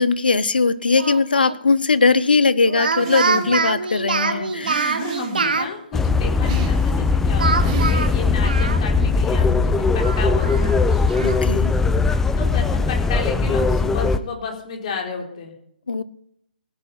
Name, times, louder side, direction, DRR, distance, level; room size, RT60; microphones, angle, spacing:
voice 1, 0.0-5.0 11.2-11.7 15.9-16.0, left 4 dB, 70° left, 16 dB, 1.0 m, -19 dB
Speech, 1.0-1.6 2.7-5.7 7.4-9.1 9.4-9.5 10.0-11.4, right 5 dB, 65° right, 1.4 m, -25 dB
sound 1, 3.0-3.7 4.6-5.7 6.4-7.1 7.6-8.4, right 7 dB, 35° right, 3.3 m, -33 dB
voice 2, 4.1-4.6 5.0-10.8 12.4-15.6, left 5 dB, 40° left, 1 dB, 4.4 m, -32 dB
sound 2, 5.9-14.2, left 4 dB, 5° left, 0.6 m, -19 dB
17.5 x 10.0 x 5.7 m, 0.72 s
figure-of-eight pair, 135°, 5 cm